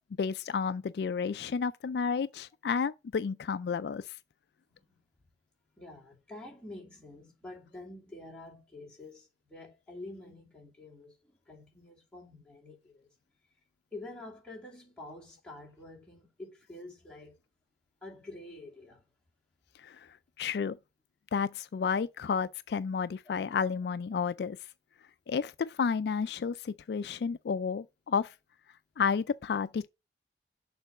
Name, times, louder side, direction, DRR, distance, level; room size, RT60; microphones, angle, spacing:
voice 1, 0.2-4.2 19.8-20.1 20.4-20.8 21.3-24.6 25.3-28.3 29.0-29.9, left 6 dB, 70° left, 0.3 m, -31 dB
voice 2, 4.7-5.0 5.8-13.1 13.9-17.4 18.0-19.0, left 2 dB, 5° left, 2.3 m, -48 dB
6.7 x 3.9 x 4.7 m
head